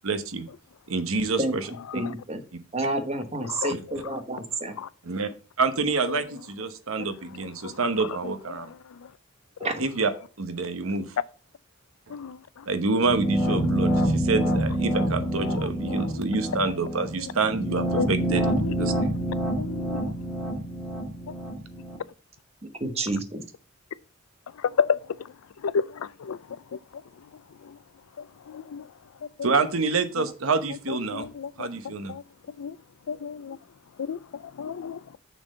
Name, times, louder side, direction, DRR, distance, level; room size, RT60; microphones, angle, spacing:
voice 1, 0.0-0.5 0.9-1.7 5.0-5.3 5.6-8.7 9.8-10.1 10.4-11.1 12.1-12.2 12.7-19.1 29.4-31.3 31.6-32.1, right 4 dB, 80° right, 1.0 m, -27 dB
voice 2, 1.9-2.4 2.7-4.7 9.6-9.7 22.8-23.4, right 2 dB, 30° right, 1.1 m, -29 dB
voice 3, 7.0-9.1 12.1-12.7 13.6-13.8 15.2-16.2 16.7-16.8 17.2-17.3 18.0-19.2 19.6-20.1 24.5-27.3 27.6-27.8 28.2-28.9 29.2-29.7 30.2-30.3 30.9-32.2 32.6-32.8 33.1-33.6 34.0-35.2, left 6 dB, 90° left, 0.4 m, -33 dB
sound 1, 13.0-22.0, right 1 dB, ahead, 1.9 m, -27 dB
6.8 x 4.4 x 6.3 m
head